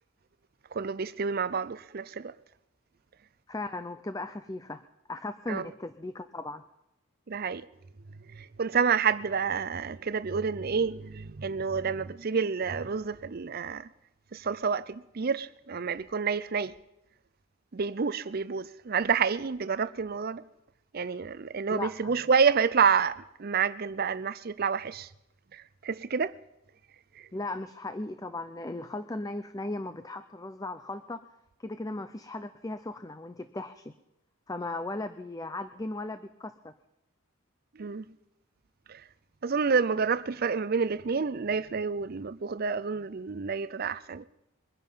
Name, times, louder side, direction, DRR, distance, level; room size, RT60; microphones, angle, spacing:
voice 1, 0.7-2.3 5.5-5.7 7.3-7.6 8.3-13.9 14.3-16.7 17.7-20.4 20.9-25.1 25.5-26.3 27.2-27.3 37.8-38.1 38.9-39.0 39.4-44.2, right 5 dB, 45° right, 0.5 m, -29 dB
voice 2, 3.5-4.8 5.1-6.6 21.7-22.1 27.3-31.3 31.6-33.9 34.5-36.7, left 2 dB, 15° left, 0.5 m, -37 dB
22.5 x 10.5 x 5.6 m
head